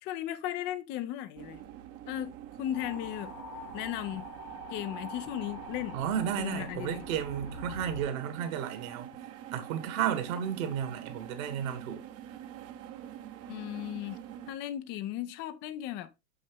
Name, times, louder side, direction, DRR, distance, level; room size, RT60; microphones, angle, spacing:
voice 1, 0.0-1.6 2.1-3.3 3.7-4.3 4.7-6.0 6.4-7.0 13.5-14.2 14.5-16.1, left 12 dB, 25° left, 0.4 m, -36 dB
sound 1, 1.4-14.5, right 11 dB, 30° right, 0.7 m, -45 dB
sound 2, 2.7-8.1, left 3 dB, 85° left, 1.4 m, -45 dB
voice 2, 5.9-9.1 9.5-12.0, right 9 dB, 55° right, 1.6 m, -33 dB
6.4 x 5.5 x 3.3 m
hypercardioid pair, 100°, 48 cm